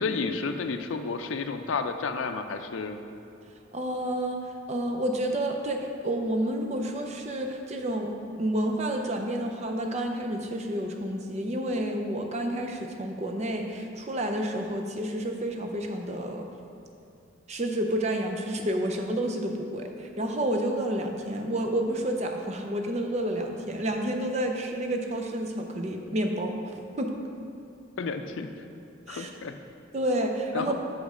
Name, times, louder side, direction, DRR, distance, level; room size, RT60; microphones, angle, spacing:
voice 1, 0.0-3.0 28.0-28.5 29.1-29.5 30.5-30.8, left 4 dB, 75° left, 7 dB, 0.4 m, -31 dB
voice 2, 3.7-4.4 4.7-16.5 17.5-27.1 29.1-29.3 29.9-30.8, right 1 dB, 35° right, 3 dB, 0.5 m, -30 dB
6.4 x 5.1 x 4.9 m, 2.6 s
head